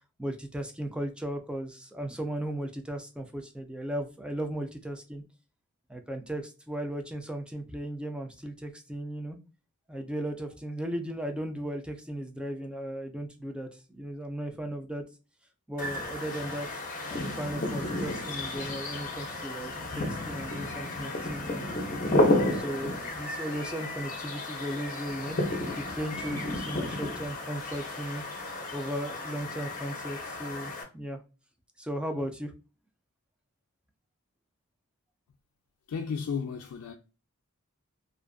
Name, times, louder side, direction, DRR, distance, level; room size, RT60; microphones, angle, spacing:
voice 1, 0.2-5.2 5.9-9.4 9.9-15.0 15.7-16.8 17.1-21.7 22.3-25.4 25.7-28.2 28.7-31.2 31.8-32.5, right 1 dB, 5° right, 0.4 m, -36 dB
sound 1, 15.8-30.8, left 1 dB, 35° left, 0.7 m, -32 dB
voice 2, 35.9-36.9, left 6 dB, 85° left, 0.4 m, -33 dB
2.5 x 2.4 x 2.2 m
head